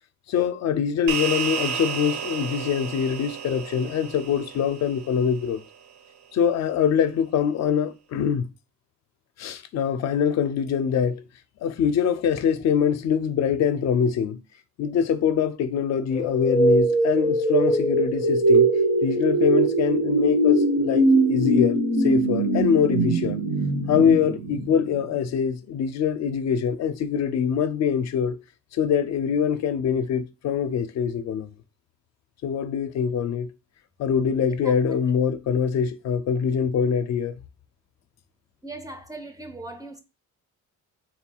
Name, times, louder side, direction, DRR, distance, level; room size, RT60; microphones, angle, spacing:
voice 1, 0.3-5.6 6.3-8.5 9.4-11.2 11.6-14.4 14.8-18.7 19.0-23.4 23.9-28.4 28.7-31.5 32.4-33.5 34.0-37.3, left 7 dB, 60° left, 0.4 m, -24 dB
sound 1, 1.1-5.7, right 8 dB, 65° right, 0.7 m, -32 dB
sound 2, 16.1-25.1, right 2 dB, 80° right, 1.6 m, -21 dB
voice 2, 38.6-40.0, right 2 dB, 10° right, 0.4 m, -38 dB
3.6 x 2.3 x 4.4 m
cardioid pair, 160°, 31 cm